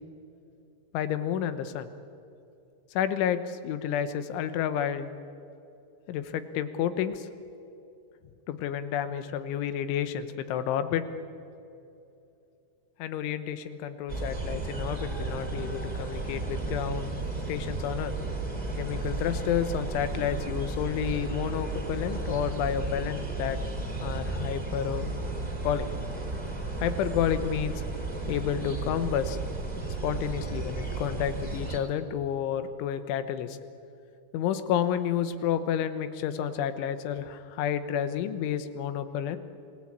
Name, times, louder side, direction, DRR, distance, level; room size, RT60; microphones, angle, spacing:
voice 1, 0.9-1.9 2.9-5.1 6.1-7.3 8.5-11.0 13.0-18.1 18.8-23.6 23.9-25.1 25.6-25.9 26.8-27.8 28.3-29.4 30.0-33.6 34.3-39.4, left 9 dB, 80° left, 11 dB, 3.5 m, -30 dB
sound 1, 14.1-31.8, right 3 dB, 10° right, 2.3 m, -33 dB
27.0 x 18.5 x 8.8 m, 2.7 s
omnidirectional pair, 5.5 m